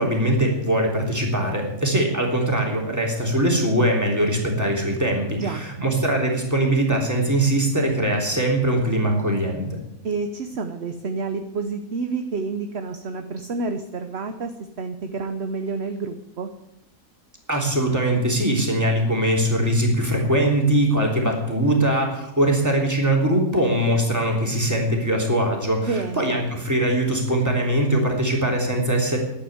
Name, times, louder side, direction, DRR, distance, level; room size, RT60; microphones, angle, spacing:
voice 1, 0.0-9.8 17.5-29.2, right 1 dB, 10° right, 0 dB, 3.2 m, -21 dB
voice 2, 10.0-14.5 14.8-16.5 25.8-26.4, right 4 dB, 50° right, 7 dB, 1.0 m, -29 dB
11.5 x 8.9 x 9.4 m, 0.87 s
omnidirectional pair, 1.7 m